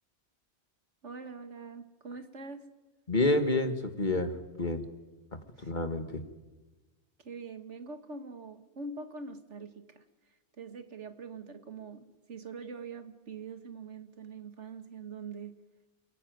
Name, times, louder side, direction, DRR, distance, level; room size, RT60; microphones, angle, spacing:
voice 1, 1.0-2.7 5.6-5.7 7.2-10.0 10.6-15.6, right 4 dB, 75° right, 2.0 m, -44 dB
voice 2, 3.1-4.8 5.3-6.2, left 2 dB, 40° left, 2.0 m, -29 dB
28.0 x 18.5 x 9.4 m
omnidirectional pair, 1.2 m